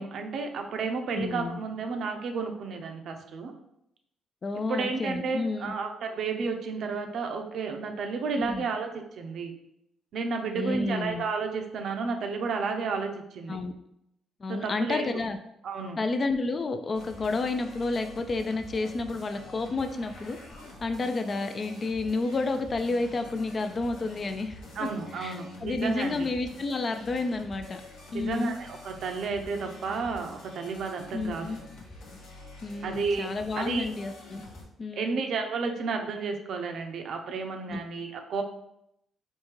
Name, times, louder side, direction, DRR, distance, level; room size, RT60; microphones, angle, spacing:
voice 1, 0.0-3.5 4.7-9.5 10.1-13.6 14.5-15.1 15.6-16.0 24.8-26.3 28.1-31.5 32.8-33.3 33.6-33.9 34.9-38.4, right 4 dB, 65° right, 4 dB, 0.5 m, -32 dB
voice 2, 1.1-1.6 4.4-5.7 8.4-8.7 10.5-11.2 13.5-13.7 14.4-15.4 16.0-20.4 20.8-24.9 25.2-27.8 28.1-28.6 31.1-31.6 32.6-34.4 34.8-35.2 37.7-37.8, left 3 dB, 40° left, 7 dB, 0.3 m, -30 dB
sound 1, 16.9-34.6, left 2 dB, 85° left, 1.0 m, -47 dB
3.5 x 2.6 x 3.0 m, 0.79 s
cardioid pair, 90°, 0 cm